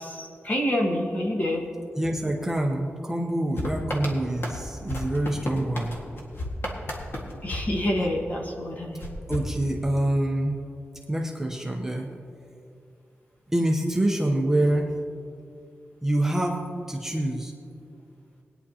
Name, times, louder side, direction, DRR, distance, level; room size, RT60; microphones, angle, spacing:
voice 1, 0.0-1.6 7.4-9.0, left 1 dB, 35° left, 0 dB, 1.6 m, -27 dB
voice 2, 1.9-6.0 9.3-10.6 11.1-12.1 13.5-14.9 16.0-16.6 16.9-17.5, right 1 dB, 10° right, 0 dB, 0.8 m, -26 dB
sound 1, 3.6-8.4 9.0-10.2, left 1 dB, 55° left, 1.7 m, -34 dB
20.0 x 9.9 x 2.8 m, 2.4 s
wide cardioid pair, 155°, 5 cm